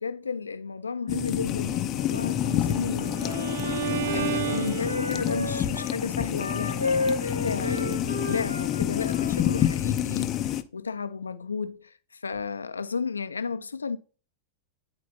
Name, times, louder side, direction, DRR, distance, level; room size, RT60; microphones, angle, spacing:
voice 1, 0.0-14.0, left 5 dB, 75° left, 0.6 m, -33 dB
sound 1, 1.1-10.6, left 11 dB, 35° left, 0.6 m, -28 dB
Bowed string instrument, 2.3-5.4, right 15 dB, 55° right, 0.4 m, -33 dB
Wind instrument woodwind instrument, 2.9-5.9 6.3-9.7, left 2 dB, 90° right, 1.5 m, -32 dB
10.5 x 4.2 x 2.8 m
figure-of-eight pair, 90°, 0 cm